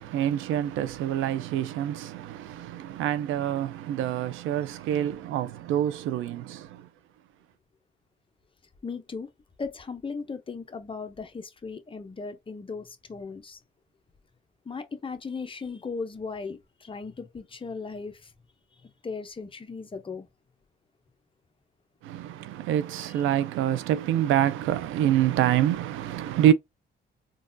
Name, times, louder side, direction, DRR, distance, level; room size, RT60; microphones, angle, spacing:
voice 1, 0.1-1.9 3.0-6.4 22.7-26.5, right 11 dB, 85° right, 0.4 m, -25 dB
voice 2, 8.8-9.3 9.6-13.6 14.7-18.3 18.8-20.3 23.1-23.2, left 4 dB, 25° left, 0.7 m, -37 dB
3.8 x 2.3 x 2.6 m
cardioid pair, 90°, 20 cm